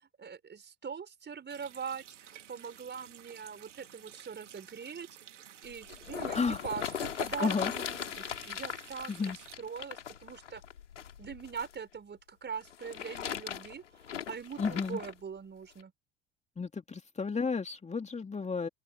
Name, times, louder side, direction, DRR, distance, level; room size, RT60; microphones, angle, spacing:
voice 1, 0.2-5.1 5.6-10.6 11.2-13.8 14.3-15.9, right 6 dB, 30° right, 5.4 m, -42 dB
Water tap faucet, 1.5-9.5, right 10 dB, 80° right, 3.2 m, -53 dB
sound 1, 5.7-11.8 12.6-15.1 15.8-15.9, left 9 dB, 80° left, 3.8 m, -39 dB
voice 2, 7.4-7.7 9.1-9.4 14.6-15.0 16.6-18.7, left 5 dB, 20° left, 2.5 m, -32 dB
open air
figure-of-eight pair, 65°, 36 cm